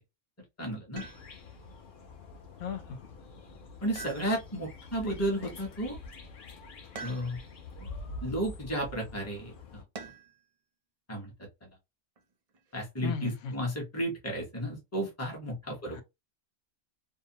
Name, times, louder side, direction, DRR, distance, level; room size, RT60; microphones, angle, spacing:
voice 1, 0.6-1.0 3.8-6.0 7.0-7.4 7.8-7.9 8.2-9.8 11.1-11.3 12.7-16.0, equal, 15° left, 0.9 m, -33 dB
sound 1, 1.0-9.8, left 2 dB, 50° left, 0.8 m, -46 dB
sound 2, 1.0-1.6 3.9-4.7 6.9-7.7 9.9-10.5 12.2-12.8, right 4 dB, 65° right, 0.3 m, -46 dB
voice 2, 2.6-3.0 13.0-13.5 15.9-16.0, left 5 dB, 90° left, 0.9 m, -36 dB
2.6 x 2.1 x 2.7 m
omnidirectional pair, 1.2 m